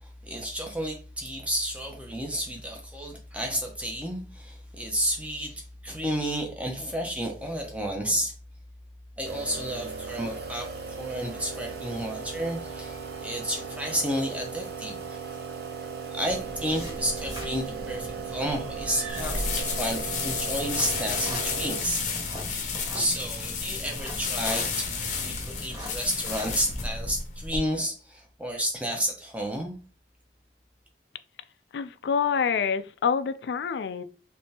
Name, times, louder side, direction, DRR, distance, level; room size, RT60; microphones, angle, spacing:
voice 1, 0.0-8.3 9.2-15.2 16.1-29.7, equal, 5° right, 0.7 m, -31 dB
sound 1, 9.2-21.8, right 5 dB, 60° right, 0.6 m, -37 dB
sound 2, 16.3-27.1, equal, 25° right, 1.3 m, -39 dB
sound 3, 19.1-27.6, left 5 dB, 45° left, 0.7 m, -32 dB
voice 2, 31.7-34.0, left 6 dB, 70° left, 0.3 m, -27 dB
3.4 x 3.3 x 2.8 m
head